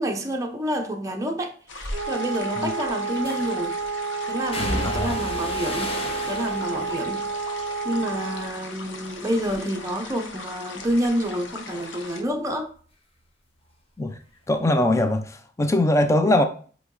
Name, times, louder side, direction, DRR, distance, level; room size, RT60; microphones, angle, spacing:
voice 1, 0.0-3.8 4.3-6.0 6.3-12.7, equal, 20° right, 0.7 m, -28 dB
sound 1, 1.7-12.2, left 3 dB, 85° left, 0.9 m, -40 dB
sound 2, 1.8-2.0 3.3-3.7 4.5-8.8 9.1-9.7 10.1-13.4 13.6-14.8 15.0-15.2, left 1 dB, 30° left, 1.0 m, -35 dB
Wind instrument woodwind instrument, 1.9-8.5, right 4 dB, 65° right, 0.5 m, -30 dB
voice 2, 4.8-5.2 14.0-14.2 14.5-16.4, left 1 dB, 15° left, 0.5 m, -21 dB
8.1 x 3.0 x 3.8 m
head